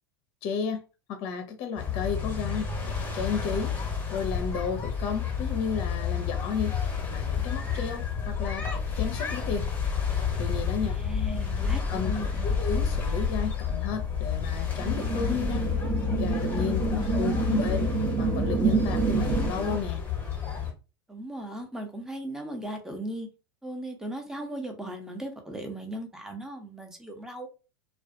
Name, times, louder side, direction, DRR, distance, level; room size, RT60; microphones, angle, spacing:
voice 1, 0.4-0.8 1.1-3.8 4.1-6.8 7.1-9.7 10.4-11.0 11.6-15.7 16.1-17.9 18.2-20.0, left 6 dB, 50° left, 0.6 m, -33 dB
sound 1, 1.8-20.7, left 6 dB, 15° left, 1.0 m, -30 dB
voice 2, 10.8-12.5 16.9-17.6 21.1-23.3 23.6-27.5, right 1 dB, 5° right, 0.6 m, -37 dB
sound 2, 14.8-19.8, right 5 dB, 45° right, 0.9 m, -28 dB
2.4 x 2.2 x 2.4 m
hypercardioid pair, 90°, 13 cm